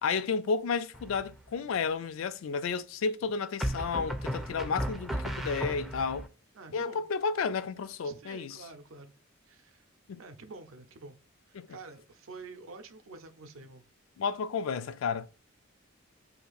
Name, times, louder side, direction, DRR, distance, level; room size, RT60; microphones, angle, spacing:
voice 1, 0.0-6.3 6.7-8.6 10.1-10.2 11.6-11.7 14.2-15.3, left 5 dB, 70° left, 0.3 m, -32 dB
sound 1, 0.9-1.5 3.6-6.3, equal, ahead, 0.3 m, -35 dB
voice 2, 6.5-7.0 8.0-9.1 9.5-9.9 10.2-11.2 11.5-13.8, right 3 dB, 75° right, 0.6 m, -48 dB
2.8 x 2.5 x 3.8 m
head